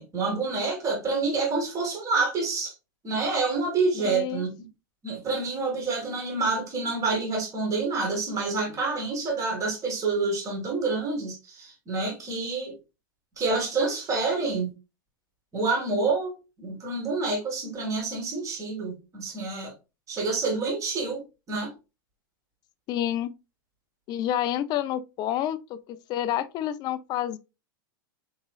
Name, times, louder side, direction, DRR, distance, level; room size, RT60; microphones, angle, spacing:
voice 1, 0.0-2.7 3.0-4.7 5.0-12.7 13.4-14.7 15.5-16.3 16.6-19.7 20.1-21.2 21.5-21.7, right 3 dB, 25° right, 1.5 m, -28 dB
voice 2, 4.0-4.4 22.9-23.3 24.1-27.4, left 11 dB, 40° left, 0.4 m, -29 dB
3.7 x 3.0 x 2.3 m
hypercardioid pair, 115°, 11 cm